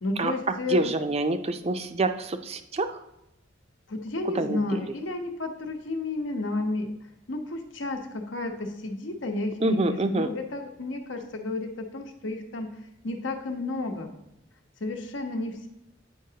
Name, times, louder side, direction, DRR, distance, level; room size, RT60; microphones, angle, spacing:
voice 1, 0.0-0.9 3.9-6.9 7.3-12.7 13.0-14.1 14.8-15.7, left 2 dB, 80° left, 4 dB, 0.9 m, -32 dB
voice 2, 0.7-3.0 4.3-4.8 9.6-10.3, right 2 dB, 35° right, 9 dB, 0.4 m, -26 dB
8.7 x 5.0 x 2.8 m, 0.87 s
head